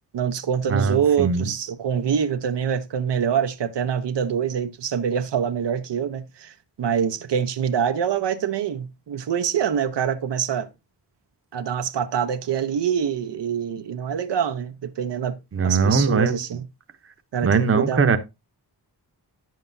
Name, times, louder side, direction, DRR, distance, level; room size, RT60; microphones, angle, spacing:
voice 1, 0.1-10.7 11.5-15.4 15.6-16.6 17.3-18.2, right 8 dB, 90° right, 0.8 m, -25 dB
voice 2, 0.7-1.5 15.5-16.4 17.4-18.2, right 4 dB, 35° right, 0.8 m, -21 dB
10.0 x 7.6 x 2.6 m
wide cardioid pair, 130°, 41 cm